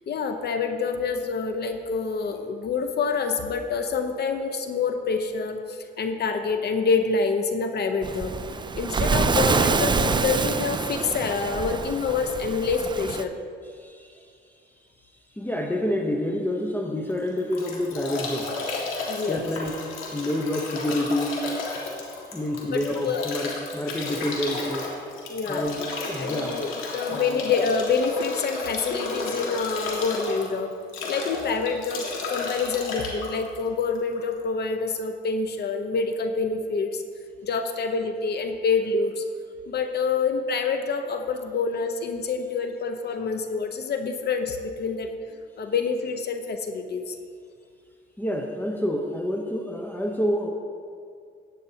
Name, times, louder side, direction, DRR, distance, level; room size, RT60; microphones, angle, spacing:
voice 1, 0.1-8.3 8.8-13.4 19.1-19.5 22.7-23.2 25.3-25.6 26.2-30.7 31.1-37.0 37.4-39.2 39.7-45.2 45.6-47.2, left 4 dB, 55° left, 7 dB, 0.8 m, -27 dB
Waves surf, 8.0-13.2, right 4 dB, 25° right, 0.4 m, -26 dB
voice 2, 13.6-14.3 15.3-18.5 19.3-21.4 22.3-24.9 25.5-26.6 27.1-27.4 48.2-50.5, left 1 dB, 10° left, 2 dB, 0.8 m, -28 dB
Bathtub (filling or washing) / Drip / Trickle dribble, 17.1-34.3, left 3 dB, 90° left, 1.9 m, -33 dB
15.0 x 9.1 x 2.9 m, 2.2 s
cardioid pair, 90°, 20 cm